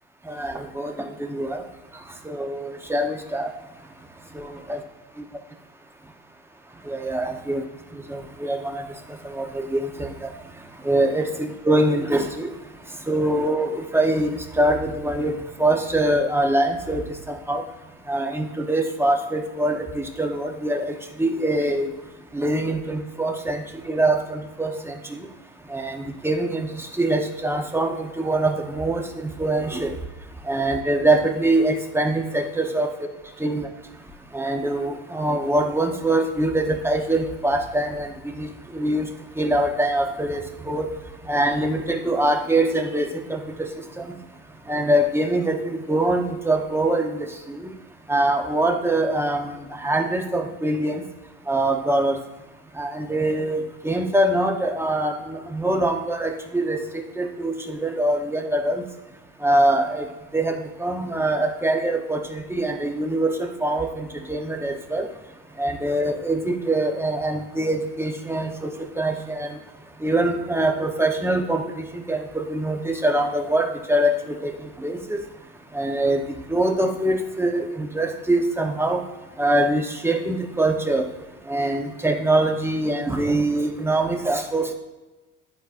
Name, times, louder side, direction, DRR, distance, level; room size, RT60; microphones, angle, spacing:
voice 1, 0.3-1.6 2.2-3.5 4.3-4.8 6.9-7.6 8.1-8.8 9.2-10.3 10.8-12.5 13.1-15.3 15.6-17.6 18.1-21.9 22.3-25.2 25.7-29.9 30.5-32.9 33.4-33.7 34.3-38.1 38.4-39.1 39.4-40.8 41.3-43.7 44.0-44.1 44.7-47.7 48.1-49.5 49.8-51.0 51.5-52.2 52.8-58.8 59.4-60.0 60.3-65.1 65.6-68.7 69.0-69.5 70.0-74.5 74.8-75.2 75.7-76.2 76.5-79.0 79.4-81.0 81.5-84.7, right 1 dB, 5° right, 3 dB, 1.1 m, -23 dB
11.5 x 4.5 x 2.6 m, 1.1 s
supercardioid pair, 90°, 36 cm